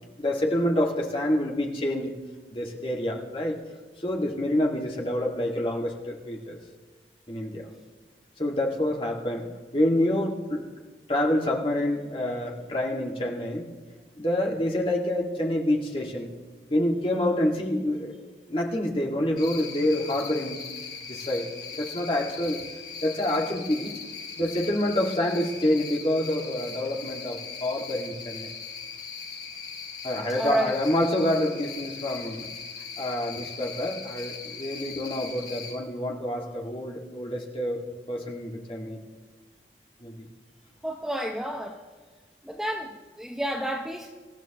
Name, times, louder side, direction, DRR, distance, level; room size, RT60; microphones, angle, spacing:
voice 1, 0.2-2.1 2.5-3.5 4.0-6.6 7.3-7.7 8.4-9.5 9.7-10.6 11.1-13.7 14.1-16.3 16.7-18.1 18.5-20.6 21.0-22.6 23.0-23.9 24.4-28.5 30.0-32.5 33.0-37.8 38.1-39.0 40.0-40.3, left 1 dB, 30° left, -1 dB, 2.0 m, -27 dB
Cricket, 19.4-35.7, left 5 dB, 60° left, 6.0 m, -39 dB
voice 2, 30.4-30.7 40.8-41.8 42.4-44.1, right 1 dB, 5° right, 0 dB, 0.8 m, -30 dB
26.0 x 14.0 x 3.0 m, 1.4 s
head